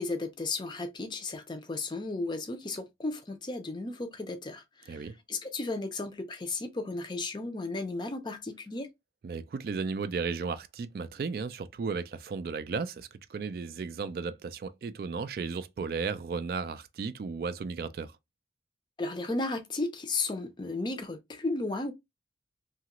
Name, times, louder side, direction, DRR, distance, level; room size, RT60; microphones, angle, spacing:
voice 1, 0.0-8.9 19.0-21.9, left 3 dB, 25° left, 0.4 m, -34 dB
voice 2, 9.2-18.1, right 5 dB, 55° right, 0.3 m, -35 dB
2.9 x 2.4 x 2.9 m
head